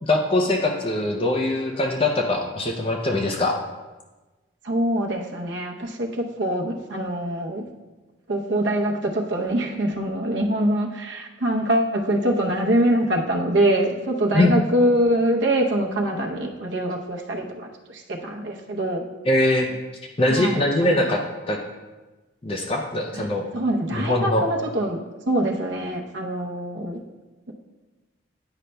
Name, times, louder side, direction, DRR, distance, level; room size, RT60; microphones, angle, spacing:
voice 1, 0.0-3.6 14.3-14.5 19.3-19.7 20.2-21.2 21.5-21.6 22.4-23.4 23.9-24.5, left 1 dB, 30° left, 2 dB, 0.4 m, -22 dB
voice 2, 4.6-7.7 8.3-19.0 20.3-20.9 23.1-23.3 23.5-25.0 25.3-27.0, right 1 dB, 70° right, 1 dB, 0.7 m, -24 dB
9.8 x 5.2 x 2.2 m, 1.2 s
head